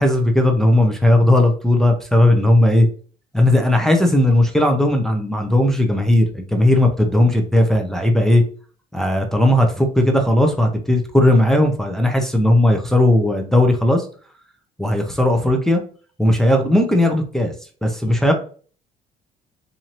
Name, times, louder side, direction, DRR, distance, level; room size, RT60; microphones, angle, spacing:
voice 1, 0.0-2.9 3.3-8.4 8.9-14.1 14.8-15.8 16.2-17.5 17.8-18.3, left 1 dB, 5° left, 2 dB, 0.6 m, -16 dB
4.4 x 2.7 x 2.9 m, 0.42 s
cardioid pair, 110°, 17 cm